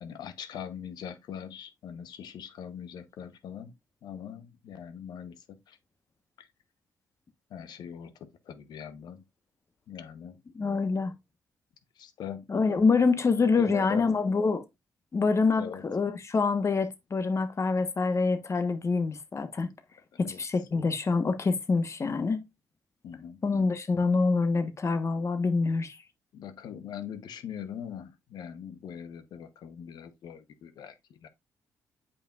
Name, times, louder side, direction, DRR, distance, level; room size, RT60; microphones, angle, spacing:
voice 1, 0.0-3.7 4.0-5.8 6.4-6.5 7.5-9.2 9.9-10.4 12.0-12.4 13.5-14.2 15.6-15.8 20.1-20.4 23.0-23.4 26.3-31.3, left 8 dB, 75° left, 1.0 m, -41 dB
voice 2, 10.5-11.1 12.5-14.6 15.1-19.7 20.2-22.4 23.4-26.0, left 4 dB, 40° left, 1.3 m, -26 dB
8.5 x 5.4 x 2.5 m
supercardioid pair, 55°, 7 cm